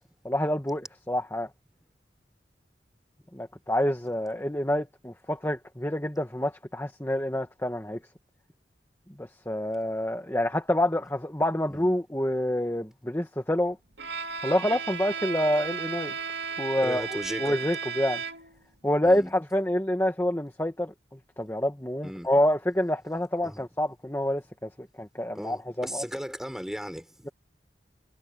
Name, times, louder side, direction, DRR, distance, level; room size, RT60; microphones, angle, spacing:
voice 1, 0.2-1.5 3.3-8.0 9.2-13.8 14.4-16.1 16.6-17.0 17.4-18.2 18.8-20.9 21.4-24.7 25.0-26.0, left 1 dB, 15° left, 1.5 m, -27 dB
Bowed string instrument, 14.0-18.7, right 5 dB, 75° right, 2.2 m, -34 dB
voice 2, 16.8-17.6 19.0-19.3 22.0-22.3 23.4-23.6 25.3-27.3, equal, 5° right, 5.7 m, -36 dB
head